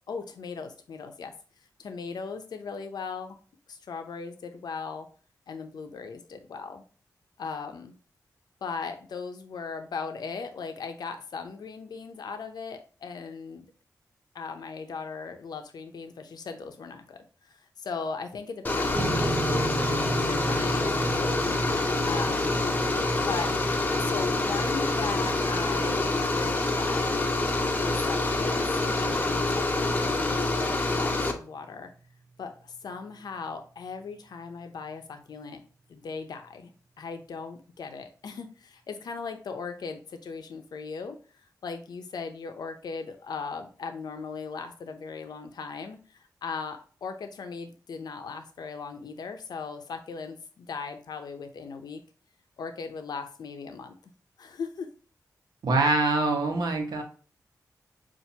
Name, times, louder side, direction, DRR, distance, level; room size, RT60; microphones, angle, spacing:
voice 1, 0.1-1.3 1.8-3.4 3.7-5.1 5.5-6.8 7.4-7.9 8.6-13.7 14.3-21.5 22.1-22.6 23.3-23.5 24.0-27.2 27.7-28.6 29.0-31.9 32.4-35.6 35.9-36.7 37.0-52.0 52.6-54.0 54.4-54.9, left 5 dB, 85° left, 7 dB, 0.6 m, -38 dB
sound 1, 18.6-31.3, left 2 dB, 25° left, 0.7 m, -26 dB
sound 2, 18.9-31.5, right 3 dB, 50° right, 0.5 m, -37 dB
voice 2, 55.6-57.0, right 3 dB, 80° right, 3 dB, 1.0 m, -24 dB
5.7 x 2.5 x 2.8 m, 0.39 s
cardioid pair, 75°, 7 cm